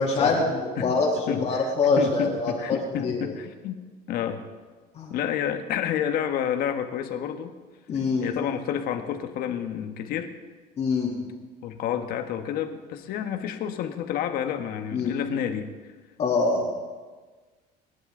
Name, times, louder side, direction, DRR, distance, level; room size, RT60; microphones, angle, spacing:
voice 1, 0.0-3.3 4.9-5.1 7.9-8.3 10.8-11.1 14.9-15.2 16.2-16.6, left 3 dB, 40° left, -3 dB, 3.3 m, -24 dB
voice 2, 1.3-3.7 4.1-4.4 5.1-7.5 8.2-10.3 11.6-15.7, left 9 dB, 60° left, 7 dB, 1.5 m, -29 dB
29.5 x 11.5 x 3.9 m, 1.4 s
cardioid pair, 150°, 18 cm